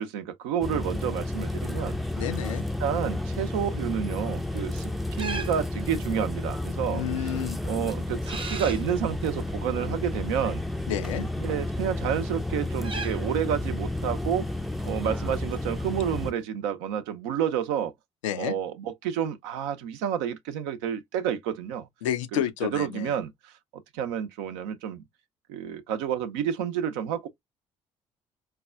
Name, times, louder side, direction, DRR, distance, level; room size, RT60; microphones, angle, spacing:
voice 1, 0.0-2.0 2.8-4.9 5.2-7.3 7.7-10.6 11.4-14.5 14.8-17.9 18.4-21.9 22.3-23.5 23.9-25.0 25.5-27.3, right 9 dB, 70° right, 0.6 m, -30 dB
sound 1, 0.6-16.3, left 2 dB, ahead, 0.5 m, -31 dB
sound 2, 0.7-16.4, right 4 dB, 30° right, 0.8 m, -44 dB
voice 2, 2.2-2.6 6.9-7.6 10.9-11.3 18.2-18.6 22.0-23.2, left 10 dB, 80° left, 0.5 m, -30 dB
4.7 x 2.2 x 2.3 m
hypercardioid pair, 50°, 16 cm